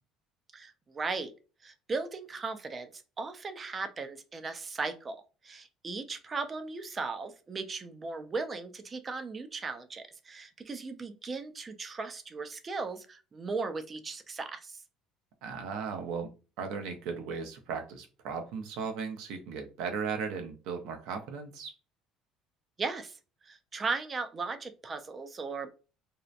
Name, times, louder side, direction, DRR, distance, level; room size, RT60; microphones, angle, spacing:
voice 1, 0.5-1.3 1.6-5.2 5.4-14.8 22.8-23.1 23.4-25.7, right 4 dB, 30° right, 9 dB, 0.4 m, -37 dB
voice 2, 15.4-16.3 16.6-21.7, right 5 dB, 75° right, 5 dB, 0.6 m, -36 dB
2.7 x 2.1 x 2.4 m, 0.33 s
cardioid pair, 105°, 0 cm